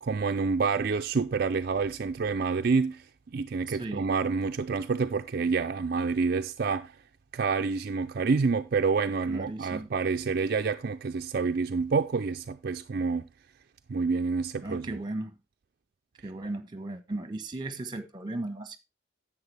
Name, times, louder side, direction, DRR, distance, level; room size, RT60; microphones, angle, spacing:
voice 1, 0.0-7.0 7.3-13.3 13.9-15.0, right 4 dB, 55° right, 0.4 m, -28 dB
voice 2, 3.7-4.1 9.3-9.9 14.6-15.3 16.2-18.8, right 2 dB, 25° right, 1.1 m, -36 dB
10.5 x 7.7 x 3.4 m
head